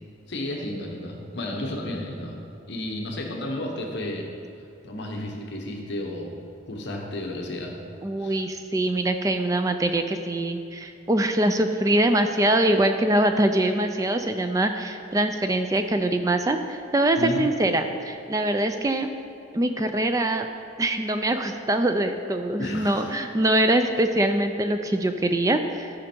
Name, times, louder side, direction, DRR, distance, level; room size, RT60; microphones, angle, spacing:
voice 1, 0.3-2.4 2.7-4.3 4.8-6.4 6.7-7.8 8.2-8.5 17.2-17.5 22.6-23.2, left 1 dB, 60° left, 1 dB, 1.0 m, -32 dB
voice 2, 8.0-19.1 19.5-20.5 20.8-25.9, right 1 dB, 15° right, 7 dB, 0.3 m, -23 dB
13.5 x 5.1 x 4.4 m, 2.7 s
head